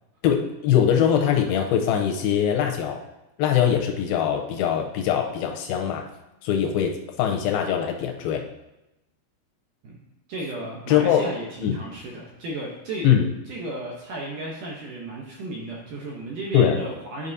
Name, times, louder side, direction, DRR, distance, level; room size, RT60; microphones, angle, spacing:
voice 1, 0.2-3.0 3.4-6.1 6.4-8.4 10.9-11.2 11.6-11.8 13.0-13.3 16.5-16.8, left 9 dB, 80° left, 2 dB, 2.3 m, -22 dB
voice 2, 10.3-13.1 13.5-17.3, right 2 dB, 75° right, -2 dB, 2.0 m, -34 dB
11.0 x 5.2 x 2.7 m, 0.95 s
omnidirectional pair, 4.7 m